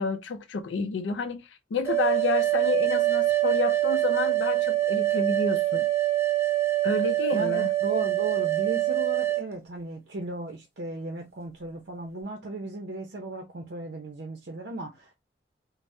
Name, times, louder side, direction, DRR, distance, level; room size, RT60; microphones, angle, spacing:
voice 1, 0.0-5.9 6.8-7.7, left 5 dB, 90° left, 0.4 m, -30 dB
sound 1, 1.9-9.4, right 15 dB, 15° right, 0.5 m, -25 dB
voice 2, 7.3-15.1, right 2 dB, 65° right, 0.6 m, -36 dB
3.4 x 2.0 x 2.6 m
head